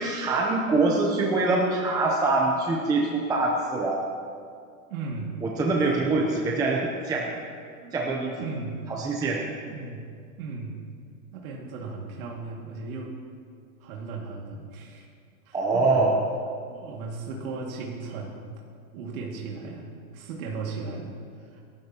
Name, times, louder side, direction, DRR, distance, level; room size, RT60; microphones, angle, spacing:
voice 1, 0.0-4.0 5.4-7.3 7.9-8.3 8.9-9.4 15.5-16.2, right 3 dB, 10° right, -1 dB, 0.7 m, -24 dB
voice 2, 4.9-6.2 7.8-8.1 8.4-8.9 9.7-10.1 10.4-10.8 11.3-13.2 13.8-15.1 15.5-16.1 16.7-18.5 18.9-19.9 20.1-21.6, right 4 dB, 70° right, -2 dB, 2.3 m, -36 dB
25.5 x 12.0 x 2.9 m, 2.3 s
supercardioid pair, 155°, 43 cm